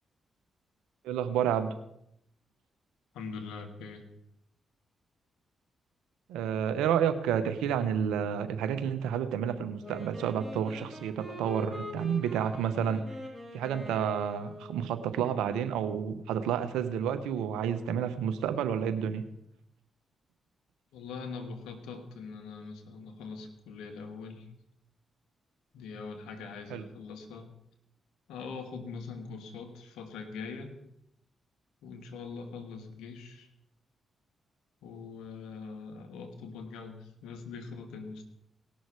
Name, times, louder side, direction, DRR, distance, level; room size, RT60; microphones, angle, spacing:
voice 1, 1.0-1.7 6.3-13.0 13.5-19.2 26.7-26.8, right 8 dB, 85° right, 10 dB, 0.8 m, -30 dB
voice 2, 3.1-4.0 20.9-24.5 25.7-27.5 28.3-30.8 31.8-33.5 34.8-38.2, left 4 dB, 85° left, 6 dB, 1.4 m, -42 dB
Wind instrument woodwind instrument, 9.8-15.0, left 1 dB, 5° right, 4.2 m, -43 dB
18.5 x 6.3 x 4.8 m, 0.77 s
hypercardioid pair, 45°, 0 cm